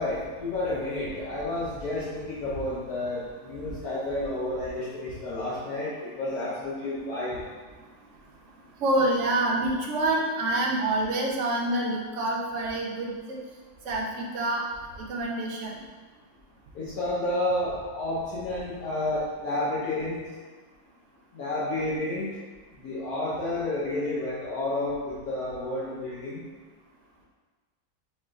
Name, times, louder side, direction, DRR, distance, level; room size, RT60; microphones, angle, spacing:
voice 1, 0.0-7.4 16.7-20.2 21.3-22.3 22.8-26.4, left 1 dB, 65° left, -9 dB, 1.3 m, -30 dB
voice 2, 8.8-13.4 13.8-14.7 15.0-15.8, right 1 dB, 55° right, -2 dB, 0.9 m, -27 dB
4.3 x 3.1 x 3.7 m, 1.3 s
omnidirectional pair, 1.8 m